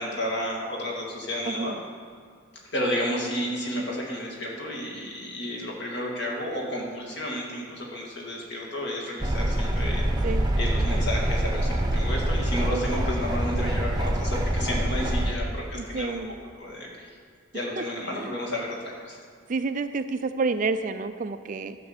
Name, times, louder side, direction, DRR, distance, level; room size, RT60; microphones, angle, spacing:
voice 1, 0.0-1.8 2.7-10.0 10.6-16.2 16.6-17.1 17.5-19.2, equal, 50° left, -2 dB, 2.3 m, -32 dB
sound 1, 9.2-15.3, right 1 dB, 20° right, 0.8 m, -25 dB
voice 2, 15.7-16.4 17.8-18.4 19.5-21.8, right 4 dB, 35° right, 10 dB, 0.3 m, -29 dB
12.0 x 5.9 x 7.2 m, 2.1 s
head